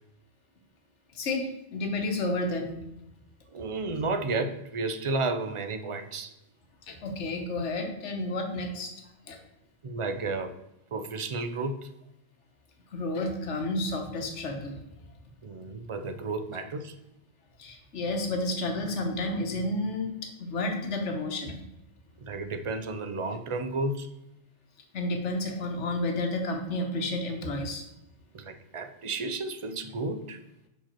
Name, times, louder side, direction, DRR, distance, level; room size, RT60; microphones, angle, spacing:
voice 1, 1.1-2.7 6.9-8.9 9.3-9.4 12.9-14.8 17.6-21.6 24.9-27.8, left 2 dB, 90° left, 4 dB, 1.3 m, -31 dB
voice 2, 3.5-6.3 9.8-10.6 10.9-11.9 15.4-17.0 22.2-24.1 28.3-30.4, right 3 dB, 50° right, 9 dB, 0.3 m, -32 dB
5.7 x 5.1 x 4.4 m, 0.87 s
omnidirectional pair, 1.2 m